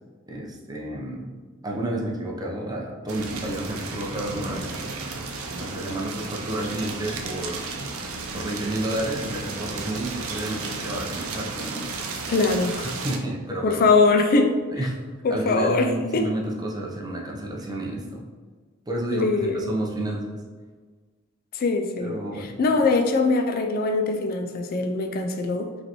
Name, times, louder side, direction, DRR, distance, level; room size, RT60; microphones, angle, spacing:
voice 1, 0.3-1.3 1.6-4.8 5.5-7.7 8.0-8.1 8.3-11.9 12.8-13.8 14.7-15.0 15.3-18.2 18.9-20.4 22.0-22.6, right 1 dB, 20° right, -2 dB, 0.6 m, -30 dB
sound 1, 3.1-13.2, right 3 dB, 90° right, 0.6 m, -33 dB
voice 2, 12.3-12.9 13.6-14.5 15.2-15.9 16.1-16.3 19.1-19.7 21.5-25.7, left 3 dB, 45° left, 5 dB, 0.3 m, -22 dB
5.0 x 3.3 x 2.9 m, 1.5 s
head